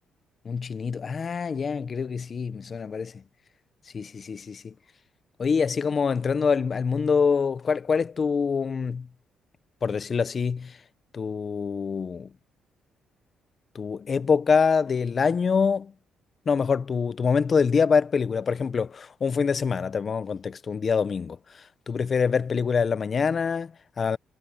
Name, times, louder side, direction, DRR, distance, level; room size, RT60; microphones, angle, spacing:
voice 1, 0.4-3.2 3.9-4.7 5.4-9.1 9.8-10.8 11.1-12.3 13.7-15.9 16.5-24.2, left 5 dB, 45° left, 1.0 m, -25 dB
cardioid pair, 90°, 0 cm